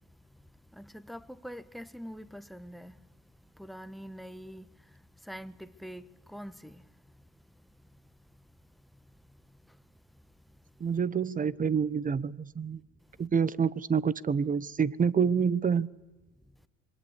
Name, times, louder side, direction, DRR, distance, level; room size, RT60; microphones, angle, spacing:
voice 1, 0.7-3.0 3.5-4.7 5.2-6.8 9.7-9.8, equal, ahead, 1.2 m, -44 dB
voice 2, 10.8-12.8 13.2-15.9, right 6 dB, 20° right, 1.0 m, -27 dB
26.5 x 23.0 x 8.4 m
hypercardioid pair, 80°, 39 cm